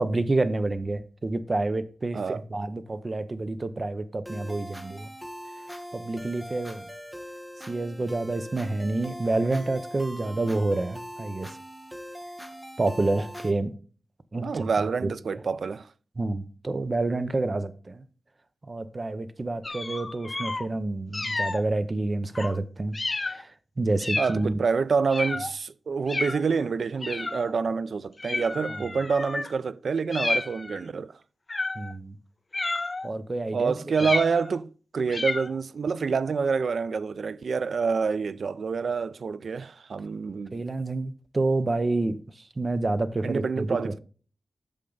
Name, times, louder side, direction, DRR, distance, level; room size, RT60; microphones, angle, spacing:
voice 1, 0.0-5.1 5.9-6.9 7.7-11.6 12.8-13.7 14.3-14.7 15.0-15.4 16.2-18.0 18.7-23.0 23.2-24.5 28.7-28.8 31.8-32.2 33.0-33.7 40.5-44.0, right 2 dB, 35° right, 0.7 m, -28 dB
sound 1, 4.3-13.5, equal, 10° right, 1.2 m, -41 dB
voice 2, 14.4-15.9 24.2-31.2 33.5-40.6 43.2-44.0, right 5 dB, 70° right, 0.3 m, -27 dB
sound 2, 19.6-20.7 21.1-21.6 22.4-22.6 22.9-23.4 24.0-24.4 25.1-25.5 26.1-26.4 27.0-27.6 28.2-29.5 30.1-30.8 31.5-31.9 32.5-33.1 34.0-34.6 35.1-35.6, left 3 dB, 30° left, 0.3 m, -31 dB
8.7 x 6.5 x 3.9 m
wide cardioid pair, 130°, 0 cm